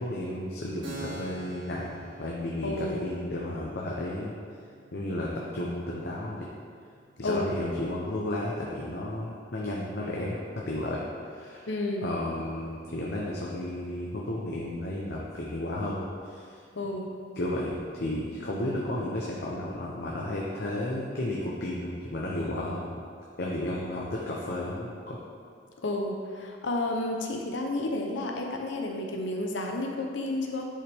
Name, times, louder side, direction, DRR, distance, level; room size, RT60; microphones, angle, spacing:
voice 1, 0.0-4.3 4.9-6.5 7.2-11.0 11.3-11.7 12.0-16.6 17.4-22.9 23.4-25.2, left 1 dB, 60° left, -4 dB, 0.9 m, -33 dB
Keyboard (musical), 0.8-8.1, right 2 dB, 80° right, 1.9 m, -47 dB
voice 2, 2.6-3.0 7.2-7.5 11.6-12.1 16.7-17.1 25.8-30.7, left 2 dB, 85° left, 1 dB, 0.8 m, -31 dB
9.9 x 5.5 x 3.6 m, 2.2 s
head